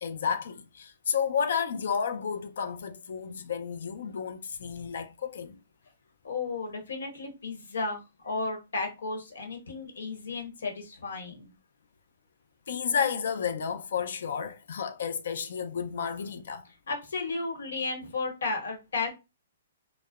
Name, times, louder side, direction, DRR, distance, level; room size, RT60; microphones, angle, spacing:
voice 1, 0.0-5.6 12.7-16.7, left 7 dB, 60° left, 0.4 m, -31 dB
voice 2, 6.2-11.5 16.9-19.1, left 3 dB, 80° left, 1.1 m, -34 dB
2.6 x 2.0 x 2.3 m
hypercardioid pair, 175°, 0 cm